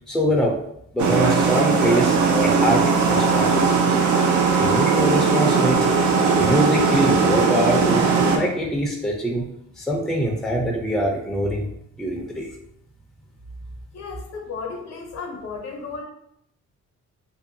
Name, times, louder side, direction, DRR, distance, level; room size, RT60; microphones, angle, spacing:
voice 1, 0.1-0.6 0.9-3.8 4.5-8.1 8.3-9.5 9.8-11.7 12.0-12.5, equal, ahead, -1 dB, 0.5 m, -24 dB
sound 1, 1.0-8.4, right 5 dB, 75° right, 0.5 m, -19 dB
voice 2, 13.9-16.0, left 4 dB, 60° left, 1 dB, 0.7 m, -34 dB
2.6 x 2.2 x 2.6 m, 0.74 s
cardioid pair, 90°, 30 cm